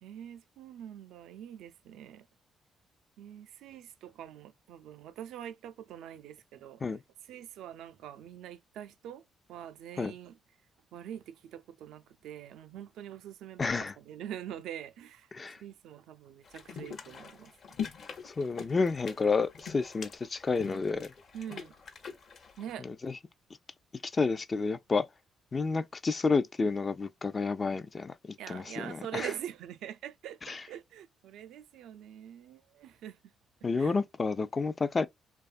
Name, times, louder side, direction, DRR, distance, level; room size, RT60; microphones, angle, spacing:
voice 1, 0.0-2.3 3.2-6.8 7.3-9.2 9.5-10.4 10.9-15.3 15.6-17.5 21.3-21.7 22.6-22.9 28.4-33.3 33.8-34.0, right 10 dB, 85° right, 0.3 m, -44 dB
voice 2, 13.6-13.9 15.3-15.6 18.2-21.1 22.8-23.1 24.0-25.1 25.5-29.3 30.5-30.6 33.6-35.1, left 4 dB, 30° left, 0.3 m, -30 dB
sound 1, 16.4-22.7, left 7 dB, 55° left, 0.8 m, -43 dB
2.7 x 2.3 x 2.4 m
cardioid pair, 90°, 0 cm